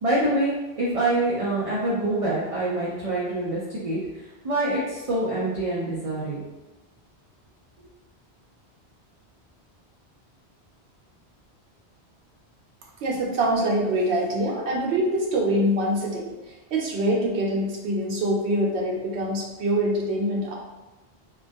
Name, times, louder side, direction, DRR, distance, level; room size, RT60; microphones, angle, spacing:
voice 1, 0.0-6.4, right 1 dB, 50° right, -7 dB, 0.4 m, -26 dB
voice 2, 13.0-20.5, right 1 dB, 80° right, -2 dB, 0.9 m, -24 dB
2.2 x 2.2 x 2.5 m, 1.1 s
omnidirectional pair, 1.1 m